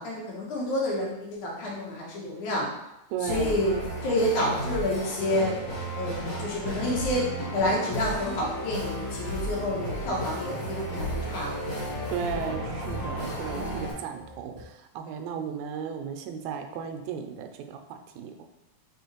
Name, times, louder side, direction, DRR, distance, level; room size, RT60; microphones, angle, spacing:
voice 1, 0.0-2.7 3.2-5.6 5.9-11.5, left 1 dB, 80° left, -3 dB, 2.5 m, -29 dB
voice 2, 3.1-3.6 12.1-18.4, right 7 dB, 90° right, 5 dB, 2.0 m, -35 dB
sound 1, 3.2-13.9, equal, 45° left, 1.7 m, -33 dB
sound 2, 9.2-14.6, equal, 70° right, 1.1 m, -45 dB
4.8 x 3.6 x 2.9 m, 0.92 s
omnidirectional pair, 3.3 m